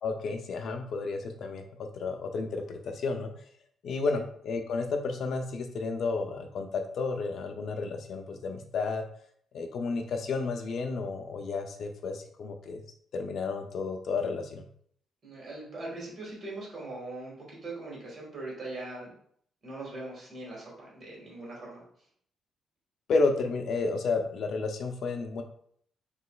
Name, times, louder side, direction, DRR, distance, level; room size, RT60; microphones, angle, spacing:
voice 1, 0.0-1.6 1.9-3.3 3.8-9.0 9.5-12.8 13.1-14.6 23.1-25.4, left 4 dB, 55° left, 5 dB, 0.5 m, -31 dB
voice 2, 15.2-19.1 19.6-21.9, right 2 dB, 35° right, -3 dB, 1.8 m, -41 dB
6.0 x 3.0 x 2.3 m, 0.63 s
cardioid pair, 165°, 0 cm